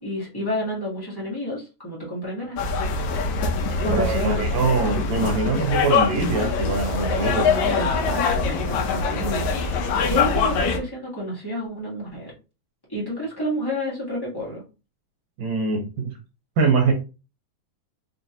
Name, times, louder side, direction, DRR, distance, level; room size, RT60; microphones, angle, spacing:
voice 1, 0.0-2.7 3.8-4.4 7.4-12.3 12.9-14.6, equal, 35° left, -6 dB, 0.3 m, -30 dB
sound 1, 2.6-10.8, left 4 dB, 80° left, 2.0 m, -23 dB
voice 2, 3.9-7.5 15.4-16.2 16.6-16.9, right 4 dB, 75° right, 1 dB, 2.0 m, -23 dB
5.2 x 2.5 x 2.8 m, 0.31 s
omnidirectional pair, 3.3 m